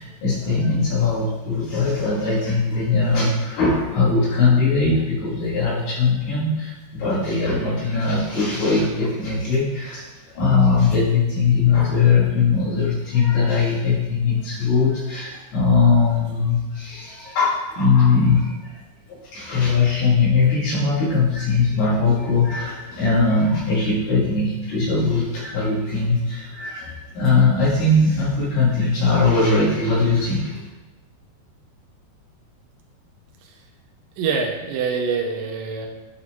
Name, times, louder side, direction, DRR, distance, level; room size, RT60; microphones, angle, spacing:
voice 1, 0.0-18.7 19.1-30.6, left 4 dB, 70° left, -9 dB, 3.7 m, -20 dB
voice 2, 34.2-35.9, right 5 dB, 85° right, 1 dB, 2.0 m, -25 dB
11.0 x 4.2 x 3.0 m, 1.1 s
omnidirectional pair, 4.9 m